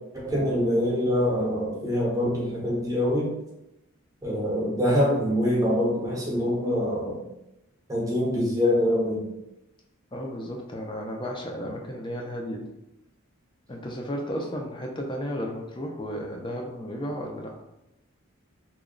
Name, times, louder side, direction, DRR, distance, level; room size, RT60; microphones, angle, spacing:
voice 1, 0.1-3.4 4.2-7.2 7.9-9.3, equal, 15° right, -4 dB, 0.8 m, -24 dB
voice 2, 10.1-12.7 13.7-17.5, equal, 20° left, 1 dB, 0.4 m, -33 dB
3.0 x 2.2 x 3.7 m, 0.89 s
head